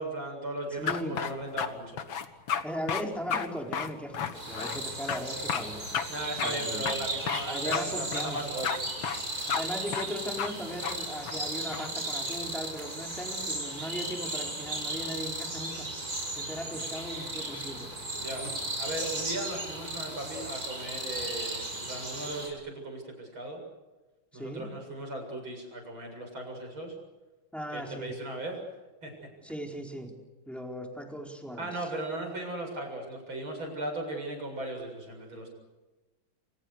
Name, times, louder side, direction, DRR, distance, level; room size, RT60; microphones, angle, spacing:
voice 1, 0.0-2.0 6.1-8.7 18.2-18.4 18.8-23.6 24.3-26.9 27.7-28.6 29.0-29.1 31.6-35.5, right 1 dB, 90° right, 3 dB, 8.2 m, -37 dB
voice 2, 0.8-1.2 2.6-5.9 6.4-7.0 7.4-8.4 9.5-15.9 16.4-17.9 24.3-24.7 27.5-28.1 29.4-30.1 30.5-31.9, equal, ahead, 1 dB, 4.4 m, -38 dB
sound 1, 0.9-1.7 2.0-2.6 2.9-3.0 3.3-3.5 3.7-4.8 5.1-5.2 5.5-5.6 5.9-6.1 6.4-6.5 6.9-7.4 7.7-7.9 8.1-8.8 9.0-9.2 9.5-9.6 9.9-10.1 10.4-10.5 10.8-11.0 11.3-11.9, left 7 dB, 80° left, 2.2 m, -31 dB
sound 2, 4.3-22.5, right 2 dB, 45° right, 6.9 m, -36 dB
28.0 x 27.0 x 6.7 m, 1.1 s
omnidirectional pair, 2.2 m